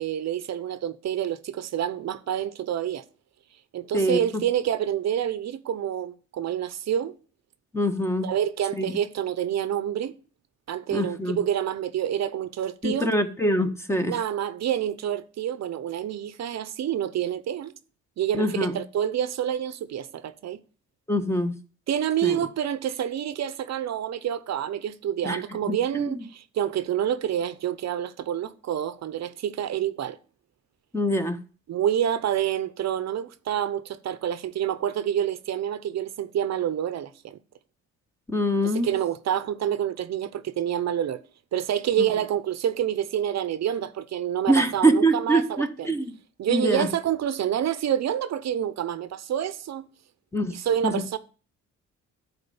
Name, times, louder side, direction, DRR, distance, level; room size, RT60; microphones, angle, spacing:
voice 1, 0.0-3.0 3.7-7.2 8.2-10.1 10.7-13.1 14.1-17.7 18.2-20.6 21.9-30.2 31.7-37.4 38.6-41.2 41.5-45.9 46.4-49.9 50.5-51.2, right 10 dB, 60° right, 0.8 m, -28 dB
voice 2, 3.9-4.4 7.7-8.3 8.7-8.9 10.9-11.4 12.8-14.2 18.3-18.8 21.1-21.5 22.2-22.4 25.2-25.4 25.7-26.2 30.9-31.4 38.3-38.9 44.5-46.1 46.5-46.9 50.3-50.6 50.8-51.0, equal, 10° left, 1.4 m, -24 dB
11.0 x 4.3 x 7.0 m
cardioid pair, 90°, 30 cm